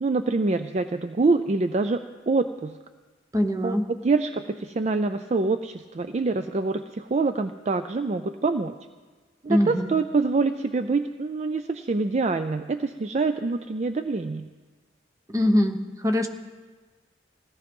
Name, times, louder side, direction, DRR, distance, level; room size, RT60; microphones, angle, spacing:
voice 1, 0.0-2.8 3.6-8.7 9.4-14.5, right 3 dB, 35° right, 9 dB, 0.4 m, -25 dB
voice 2, 3.3-3.8 9.5-9.9 15.3-15.8 16.0-16.3, left 1 dB, 20° right, 6 dB, 0.9 m, -22 dB
17.0 x 13.0 x 5.4 m, 1.4 s
head